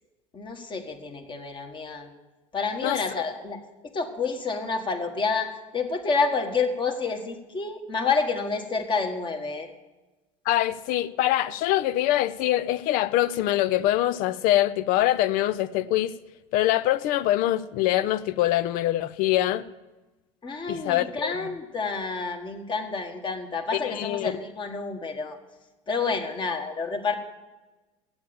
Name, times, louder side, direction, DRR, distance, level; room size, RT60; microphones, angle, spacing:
voice 1, 0.3-2.1 2.5-3.6 3.9-9.7 20.4-25.4 25.9-27.1, left 4 dB, 30° left, 1.6 m, -29 dB
voice 2, 10.5-16.1 16.5-19.6 20.7-21.3 23.7-24.3, left 14 dB, 60° left, 0.5 m, -24 dB
8.7 x 7.2 x 8.7 m
hypercardioid pair, 75°, 16 cm